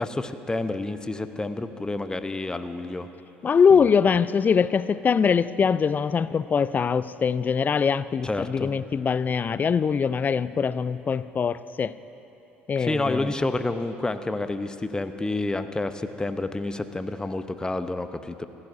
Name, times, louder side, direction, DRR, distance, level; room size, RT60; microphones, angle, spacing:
voice 1, 0.0-3.1 3.7-3.8 8.2-8.7 12.8-18.5, left 2 dB, 15° left, 10 dB, 0.8 m, -29 dB
voice 2, 3.4-11.9 12.7-13.3, left 6 dB, 30° left, 16 dB, 0.4 m, -22 dB
27.5 x 14.0 x 2.7 m, 3.0 s
hypercardioid pair, 60°, 6 cm